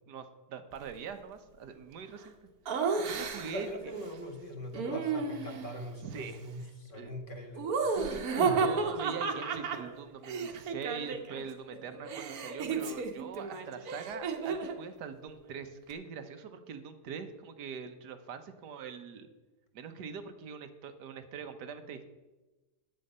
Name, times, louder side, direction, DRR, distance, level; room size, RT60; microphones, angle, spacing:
voice 1, 0.1-3.9 6.0-7.1 8.6-19.3 19.7-22.1, right 6 dB, 85° right, 9 dB, 1.5 m, -43 dB
Laughter, 2.7-3.7 4.7-5.8 7.6-11.4 11.7-14.8, right 5 dB, 65° right, 1.4 m, -33 dB
voice 2, 3.0-7.7 7.9-8.6, equal, 30° left, 3 dB, 1.7 m, -41 dB
10.5 x 8.9 x 5.4 m, 1.1 s
omnidirectional pair, 1.7 m